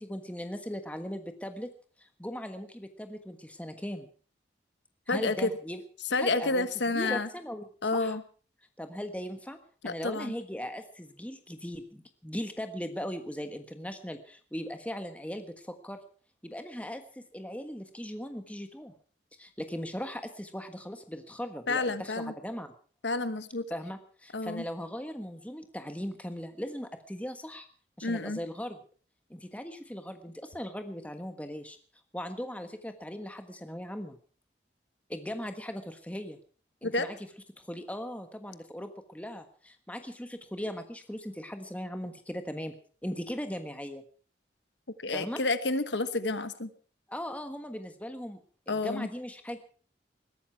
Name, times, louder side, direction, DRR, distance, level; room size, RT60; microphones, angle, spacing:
voice 1, 0.0-1.7 2.0-4.1 5.1-5.8 6.2-7.6 7.9-8.2 8.8-9.6 9.8-16.0 16.4-18.9 19.4-22.7 23.7-27.7 28.0-28.8 29.3-31.8 32.1-34.2 35.1-36.4 36.8-37.2 37.6-42.7 43.0-44.0 45.1-45.4 47.1-48.4 48.7-49.6, equal, 10° left, 7 dB, 1.4 m, -38 dB
voice 2, 5.1-5.5 6.1-7.3 7.8-8.2 9.8-10.3 21.7-22.3 23.0-23.6 24.3-24.6 28.0-28.4 36.8-37.1 45.0-46.7 48.7-49.1, left 3 dB, 80° left, 12 dB, 1.2 m, -29 dB
21.0 x 13.0 x 4.6 m, 0.41 s
head